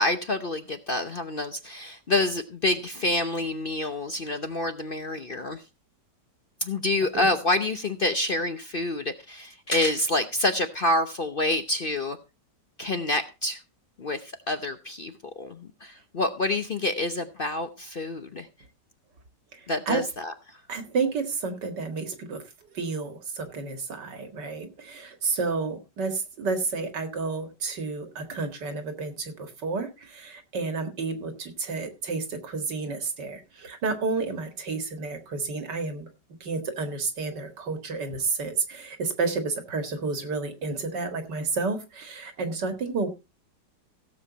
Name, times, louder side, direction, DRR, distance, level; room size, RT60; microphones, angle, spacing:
voice 1, 0.0-5.6 6.6-12.2 12.8-13.6 14.0-18.5 19.7-20.6, left 2 dB, 45° left, 8 dB, 0.7 m, -27 dB
voice 2, 20.7-22.4 22.7-36.1 36.4-43.1, right 4 dB, 75° right, 7 dB, 2.5 m, -30 dB
16.5 x 7.5 x 4.0 m, 0.28 s
omnidirectional pair, 1.9 m